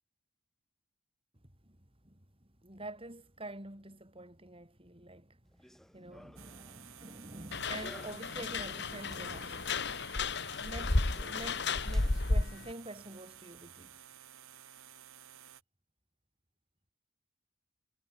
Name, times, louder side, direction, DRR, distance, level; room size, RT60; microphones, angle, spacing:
voice 1, 1.4-1.8 2.0-5.4 5.9-9.9 10.6-14.0, right 1 dB, 25° right, 4.6 m, -47 dB
Run, 5.4-13.2, equal, ahead, 4.1 m, -58 dB
sound 1, 6.4-15.6, right 10 dB, 85° right, 4.5 m, -54 dB
sound 2, 7.5-12.7, left 3 dB, 50° left, 1.7 m, -33 dB
head